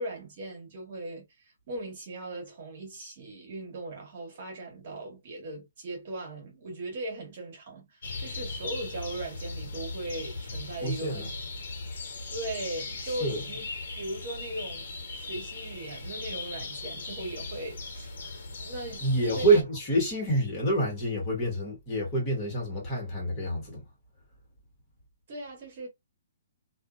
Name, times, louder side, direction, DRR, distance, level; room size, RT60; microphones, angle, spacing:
voice 1, 0.0-11.3 12.3-13.7 13.9-19.1 19.3-19.6 25.3-25.9, right 2 dB, 45° right, 1.3 m, -38 dB
sound 1, 8.0-19.6, left 3 dB, 60° left, 1.1 m, -38 dB
voice 2, 10.8-11.3 12.0-12.1 13.0-13.4 19.0-23.8, right 2 dB, 20° left, 1.3 m, -27 dB
2.6 x 2.3 x 2.4 m
hypercardioid pair, 165°, 0 cm